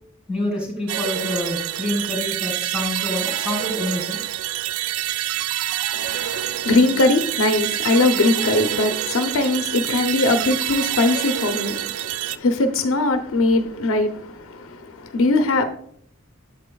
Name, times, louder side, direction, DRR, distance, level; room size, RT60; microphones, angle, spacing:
voice 1, 0.3-4.2, left 1 dB, 5° right, 2.3 m, -27 dB
sound 1, 0.9-12.4, right 13 dB, 80° right, 0.3 m, -27 dB
voice 2, 5.9-15.6, left 2 dB, 75° left, 0.6 m, -21 dB
8.3 x 7.6 x 2.3 m
head